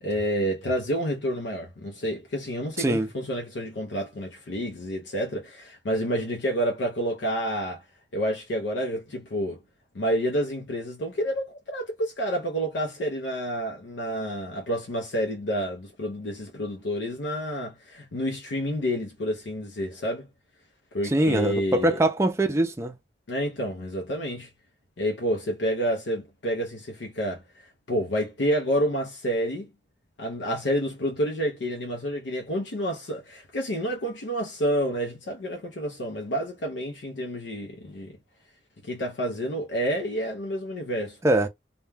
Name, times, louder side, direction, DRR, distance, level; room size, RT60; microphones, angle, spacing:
voice 1, 0.0-7.8 8.1-9.6 9.9-20.3 20.9-22.0 23.3-24.5 25.0-29.7 30.2-38.1 38.8-41.2, equal, 85° left, 0.6 m, -29 dB
voice 2, 2.8-3.1 21.0-23.0 41.2-41.5, right 1 dB, 15° right, 0.4 m, -22 dB
2.2 x 2.2 x 3.2 m
head